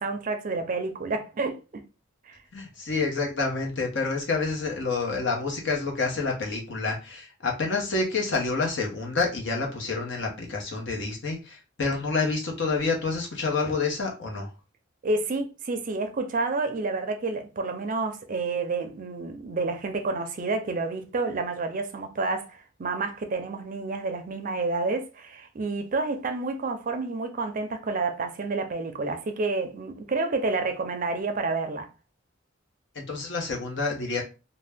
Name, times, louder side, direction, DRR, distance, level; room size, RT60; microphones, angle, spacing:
voice 1, 0.0-1.8 2.3-2.4 15.0-31.9, right 3 dB, 40° right, 0.4 m, -29 dB
voice 2, 2.5-14.5 32.9-34.2, left 4 dB, 65° left, 0.9 m, -28 dB
2.6 x 2.2 x 3.4 m
head